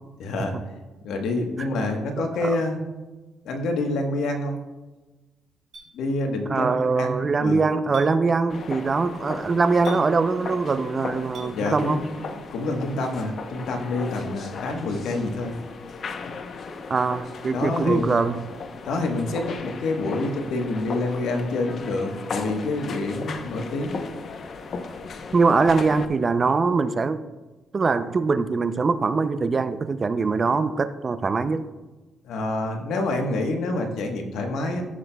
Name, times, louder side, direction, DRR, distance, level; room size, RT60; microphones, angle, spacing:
voice 1, 0.2-0.6 1.0-2.8 3.4-4.6 5.9-7.6 11.5-12.0 12.5-15.5 17.5-18.2 18.9-24.0 32.2-34.9, left 2 dB, 80° left, 3 dB, 1.1 m, -27 dB
voice 2, 2.2-2.6 6.5-12.1 16.9-18.4 25.3-27.2 27.7-31.7, right 4 dB, 35° right, 12 dB, 0.4 m, -22 dB
Chink clink, 5.7-5.9 7.9-8.1 9.8-10.0 11.3-11.5, right 4 dB, 65° right, 2.9 m, -41 dB
sound 1, 8.5-26.0, left 4 dB, 55° left, 0.7 m, -36 dB
14.5 x 6.0 x 2.2 m, 1.2 s
cardioid pair, 90°, 0 cm